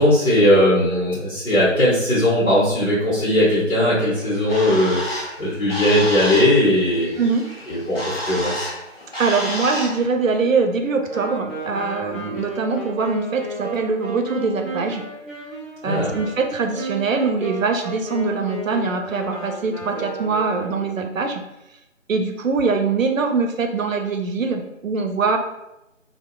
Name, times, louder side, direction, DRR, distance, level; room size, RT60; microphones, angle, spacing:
voice 1, 0.0-7.1 7.7-8.7 15.9-16.2, left 1 dB, 85° left, -7 dB, 1.0 m, -18 dB
Bird, 4.1-10.0, left 1 dB, 50° left, 0.7 m, -30 dB
voice 2, 7.2-7.5 9.2-15.0 15.8-21.4 22.1-25.4, right 4 dB, 80° right, 5 dB, 0.5 m, -23 dB
Wind instrument woodwind instrument, 11.1-21.0, right 2 dB, ahead, 0.5 m, -33 dB
2.7 x 2.0 x 2.2 m, 0.90 s
figure-of-eight pair, 165°, 39 cm